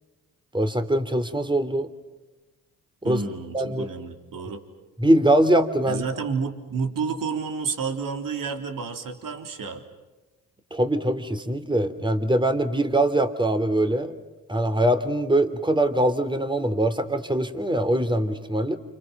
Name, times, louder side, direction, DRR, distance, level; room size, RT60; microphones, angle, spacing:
voice 1, 0.5-1.9 3.0-3.2 3.5-3.8 5.0-6.0 10.7-14.1 14.5-18.8, right 1 dB, 10° right, 10 dB, 3.0 m, -22 dB
voice 2, 3.0-4.6 5.9-9.8, right 5 dB, 60° right, 5 dB, 3.6 m, -30 dB
29.5 x 28.0 x 6.1 m, 1.1 s
supercardioid pair, 60°, 37 cm